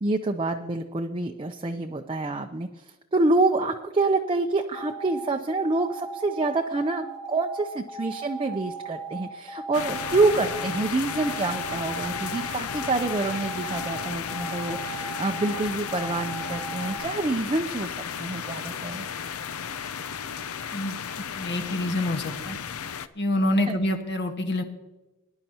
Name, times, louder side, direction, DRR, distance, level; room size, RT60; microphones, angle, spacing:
voice 1, 0.0-2.8 3.1-19.1 23.7-23.8, right 2 dB, 25° right, 3 dB, 0.6 m, -27 dB
sound 1, 4.7-17.0, right 4 dB, 30° left, 3.6 m, -38 dB
sound 2, 9.7-23.1, left 7 dB, 90° left, 0.6 m, -34 dB
voice 2, 20.7-22.6 23.1-24.6, left 1 dB, 55° left, 4 dB, 1.5 m, -27 dB
20.0 x 10.5 x 2.9 m, 1.1 s
head